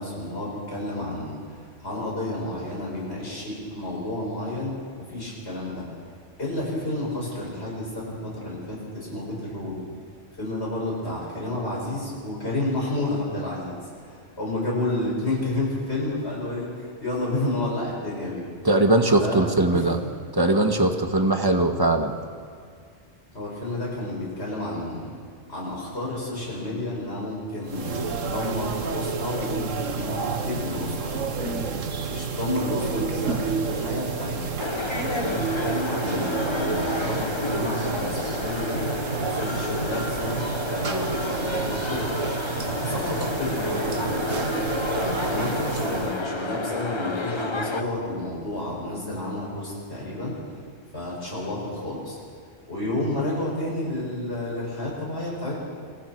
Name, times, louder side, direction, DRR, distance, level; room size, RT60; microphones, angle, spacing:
voice 1, 0.0-1.4 1.8-4.7 5.1-5.9 6.4-9.8 10.4-18.4 19.1-19.9 23.3-25.1 25.5-31.6 32.1-34.5 35.1-38.8 39.3-42.1 42.6-44.4 44.9-50.4 50.9-52.2 52.7-55.6, left 1 dB, 55° left, -5 dB, 7.5 m, -30 dB
voice 2, 18.6-20.0 20.3-22.1, right 2 dB, 20° right, 5 dB, 1.5 m, -20 dB
sound 1, 27.6-46.3, right 5 dB, 85° right, 1.7 m, -30 dB
sound 2, 34.6-47.8, left 3 dB, 25° left, 0.9 m, -31 dB
28.0 x 22.5 x 4.7 m, 2.1 s
omnidirectional pair, 1.3 m